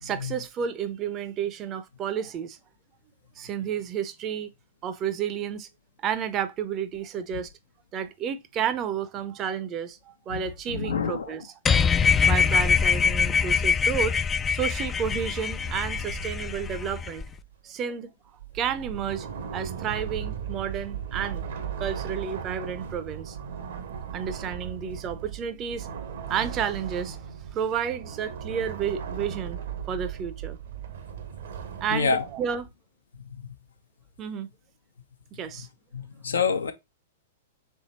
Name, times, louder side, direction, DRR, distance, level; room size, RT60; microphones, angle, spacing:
voice 1, 0.0-2.6 3.4-4.5 4.8-5.7 6.0-7.5 7.9-11.5 12.2-14.2 14.5-17.2 17.6-18.1 18.5-19.3 19.5-21.4 21.8-23.4 24.1-25.9 26.3-27.2 27.5-29.6 29.9-30.6 31.8-32.7 34.2-34.5 35.3-35.7, right 8 dB, 30° right, 0.6 m, -31 dB
voice 2, 10.7-11.3 31.9-32.2 35.9-36.7, left 5 dB, 75° left, 0.8 m, -27 dB
sound 1, 11.7-17.3, left 6 dB, 20° left, 0.3 m, -23 dB
sound 2, 15.6-17.5 18.4-32.7, right 8 dB, 65° right, 1.0 m, -37 dB
3.6 x 3.5 x 4.1 m
hypercardioid pair, 105°, 0 cm